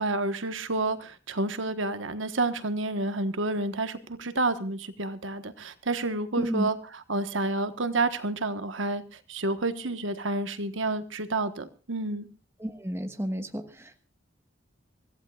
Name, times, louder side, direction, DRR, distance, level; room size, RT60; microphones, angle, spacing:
voice 1, 0.0-12.3, right 2 dB, 80° right, 10 dB, 1.3 m, -29 dB
voice 2, 6.4-6.7 12.6-14.0, equal, 15° right, 6 dB, 1.4 m, -31 dB
25.0 x 15.5 x 2.4 m, 0.34 s
head